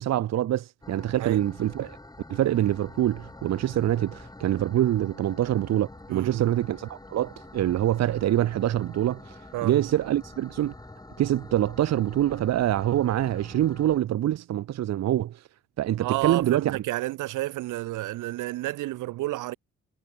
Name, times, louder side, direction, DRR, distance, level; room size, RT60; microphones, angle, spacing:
voice 1, 0.0-2.0 2.3-9.2 9.6-10.7 11.2-15.4 15.8-16.8, right 12 dB, 60° right, 0.8 m, -25 dB
sound 1, 0.8-14.0, left 2 dB, 10° left, 4.5 m, -46 dB
voice 2, 6.1-6.6 9.5-9.8 16.0-19.6, right 17 dB, 85° right, 1.0 m, -31 dB
cardioid pair, 90°, 30 cm